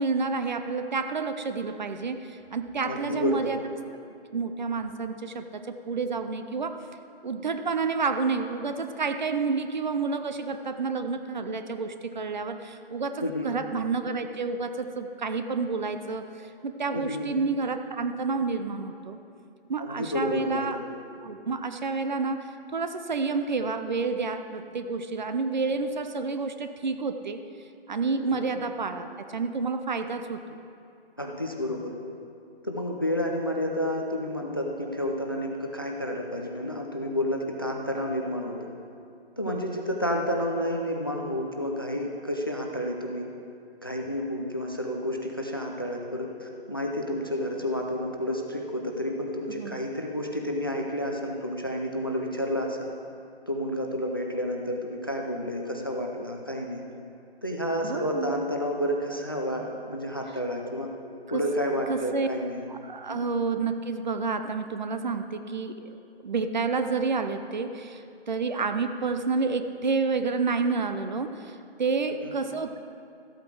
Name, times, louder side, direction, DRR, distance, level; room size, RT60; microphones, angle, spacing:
voice 1, 0.0-3.6 4.3-6.7 7.2-19.2 19.7-20.8 21.2-22.5 22.7-27.4 27.9-30.4 39.5-39.8 49.5-49.8 57.8-58.3 61.3-61.4 61.9-62.3 62.7-65.9 66.2-72.8, right 4 dB, 45° right, 8 dB, 0.6 m, -29 dB
voice 2, 2.8-3.5 13.2-13.5 16.9-17.3 19.8-20.8 28.3-28.4 31.2-31.9 32.6-38.5 39.4-43.3 43.8-52.9 53.5-56.8 57.4-60.9 61.3-62.7 63.1-63.2 72.2-72.3, equal, 25° left, 1 dB, 0.4 m, -30 dB
14.0 x 8.3 x 4.6 m, 2.5 s
hypercardioid pair, 170°, 31 cm